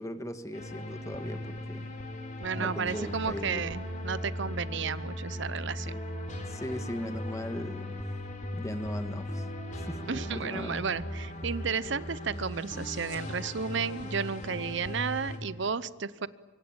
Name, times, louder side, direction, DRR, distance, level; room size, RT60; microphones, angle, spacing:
voice 1, 0.0-1.9 2.5-3.6 6.4-8.0 8.5-9.4 9.7-10.0 10.3-10.8, equal, 15° left, 8 dB, 1.6 m, -38 dB
sound 1, 0.5-15.4, left 1 dB, 40° left, 4.0 m, -38 dB
voice 2, 2.4-6.0 10.1-16.3, right 5 dB, 60° right, 16 dB, 0.7 m, -33 dB
24.5 x 24.5 x 8.9 m, 1.3 s
head